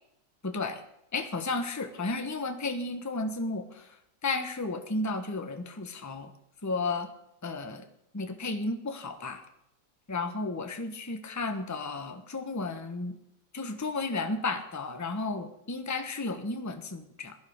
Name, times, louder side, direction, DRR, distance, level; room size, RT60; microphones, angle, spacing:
voice 1, 0.4-0.8 1.1-3.9 4.2-6.3 6.6-7.1 7.4-7.9 8.1-9.4 10.1-13.2 13.5-17.4, left 3 dB, 10° left, 7 dB, 1.0 m, -33 dB
16.0 x 11.0 x 6.5 m, 0.79 s
omnidirectional pair, 1.9 m